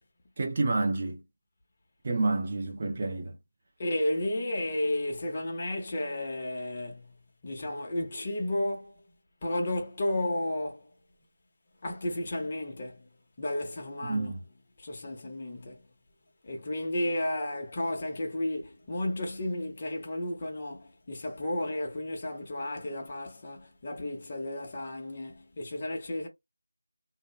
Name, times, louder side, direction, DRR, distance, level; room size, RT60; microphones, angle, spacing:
voice 1, 0.4-1.2 2.0-3.4 14.0-14.4, right 3 dB, 30° right, 0.4 m, -29 dB
voice 2, 3.8-9.0 9.4-10.9 11.8-13.1 13.4-14.3 14.8-15.8 16.4-26.3, left 1 dB, 25° left, 0.6 m, -33 dB
2.7 x 2.0 x 2.3 m
figure-of-eight pair, 175°, 0 cm